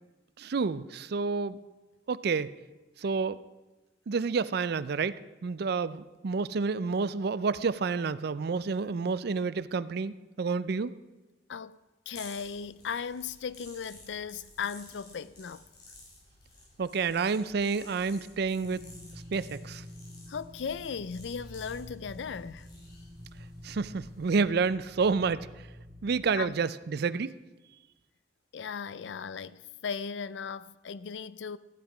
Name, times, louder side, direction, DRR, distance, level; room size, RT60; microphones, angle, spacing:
voice 1, 0.4-1.6 2.1-2.5 3.0-3.4 4.1-10.9 16.8-18.8 19.3-19.8 23.6-25.5 26.0-27.3, right 5 dB, 60° right, 0.4 m, -29 dB
voice 2, 12.1-15.6 20.3-22.7 26.4-26.5 28.5-31.6, left 6 dB, 80° left, 0.4 m, -37 dB
sound 1, 12.1-24.4, left 2 dB, 65° left, 5.0 m, -54 dB
sound 2, 18.6-26.3, left 1 dB, 20° right, 2.0 m, -48 dB
14.5 x 9.5 x 4.9 m
head